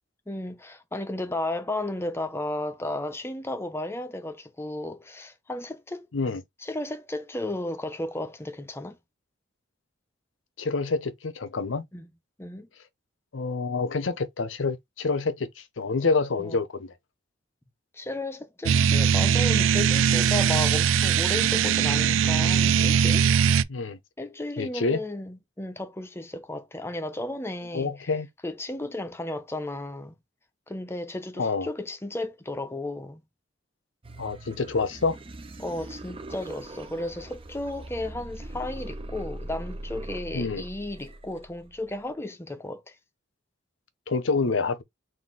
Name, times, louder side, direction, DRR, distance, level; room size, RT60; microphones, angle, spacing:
voice 1, 0.3-6.1 6.6-9.0 11.9-12.1 12.4-12.7 16.4-16.6 17.9-23.3 24.2-27.9 28.4-30.1 30.7-33.2 35.6-43.0, left 1 dB, 15° left, 0.6 m, -34 dB
voice 2, 10.6-11.9 13.3-16.9 23.7-24.0 24.6-25.0 27.7-28.3 31.4-31.7 34.2-35.2 40.3-40.6 44.1-44.8, left 4 dB, 75° left, 0.7 m, -27 dB
sound 1, 18.7-23.6, right 7 dB, 80° right, 0.3 m, -21 dB
sound 2, 34.0-42.0, right 1 dB, 30° right, 0.6 m, -41 dB
4.0 x 2.6 x 3.7 m
head